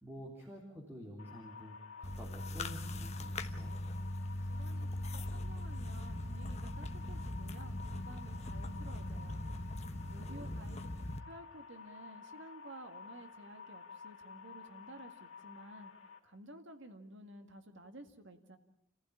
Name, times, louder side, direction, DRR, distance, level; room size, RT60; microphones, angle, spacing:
voice 1, 0.0-3.8 10.0-10.6, equal, 10° right, -1 dB, 3.5 m, -50 dB
sound 1, 1.2-16.2, left 5 dB, 65° left, 3.2 m, -53 dB
sound 2, 2.0-11.2, left 1 dB, 30° left, 1.1 m, -40 dB
voice 2, 4.5-4.9 5.1-9.4 10.1-10.8 11.3-15.9 16.2-18.6, right 1 dB, 60° right, 7 dB, 2.1 m, -53 dB
28.5 x 15.5 x 8.8 m, 0.76 s
head